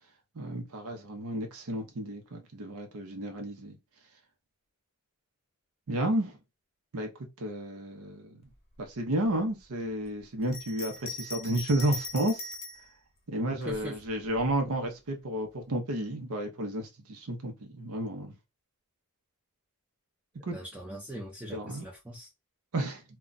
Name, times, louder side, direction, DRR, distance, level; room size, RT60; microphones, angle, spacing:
voice 1, 0.4-3.8 5.9-6.4 6.9-7.1 7.4-8.4 8.8-12.5 13.3-18.3 20.5-20.6 21.5-21.8 22.7-23.0, right 1 dB, 75° right, 0.7 m, -32 dB
Bell, 10.4-12.9 13.6-14.5, left 3 dB, 30° left, 0.8 m, -40 dB
voice 2, 13.7-14.0 20.5-22.3, right 1 dB, 5° right, 0.5 m, -41 dB
2.3 x 2.2 x 3.8 m
head